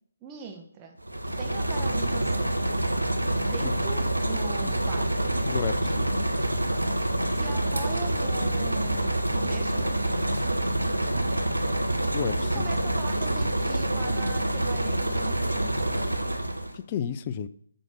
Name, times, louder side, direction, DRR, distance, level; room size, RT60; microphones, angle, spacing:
voice 1, 0.2-1.0 1.3-2.6 3.4-5.4 6.8-10.5 12.4-15.8, right 5 dB, 15° right, 3 dB, 0.9 m, -41 dB
sound 1, 1.0-16.8, right 1 dB, 80° right, 1.5 m, -27 dB
voice 2, 5.5-6.2 12.1-12.6 16.7-17.5, left 8 dB, 25° left, 12 dB, 0.5 m, -32 dB
9.2 x 5.0 x 7.0 m, 0.62 s
figure-of-eight pair, 145°, 0 cm